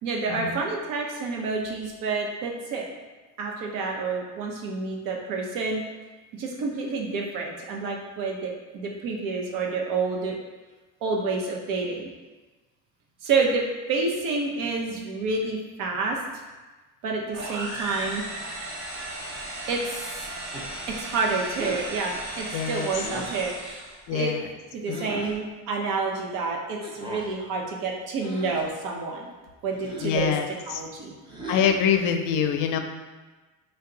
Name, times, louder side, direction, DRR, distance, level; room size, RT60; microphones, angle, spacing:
voice 1, 0.0-2.9 3.4-5.8 6.3-10.4 11.0-12.1 13.2-16.2 17.0-18.2 19.3-20.3 20.9-24.3 24.7-29.3 29.6-30.3 30.7-31.1, right 4 dB, 80° right, 0 dB, 0.8 m, -29 dB
sound 1, 17.3-24.0, right 1 dB, 50° right, 1.0 m, -36 dB
sound 2, 20.5-20.9 21.5-21.9 23.0-23.5 24.9-25.4 26.8-27.3 28.2-28.7 29.7-30.2 31.3-32.0, right 1 dB, 15° right, 0.6 m, -37 dB
voice 2, 22.5-22.9 24.1-24.4 30.0-30.5 31.5-32.8, left 8 dB, 70° left, 6 dB, 0.5 m, -24 dB
4.6 x 2.2 x 3.8 m, 1.2 s
cardioid pair, 140°, 33 cm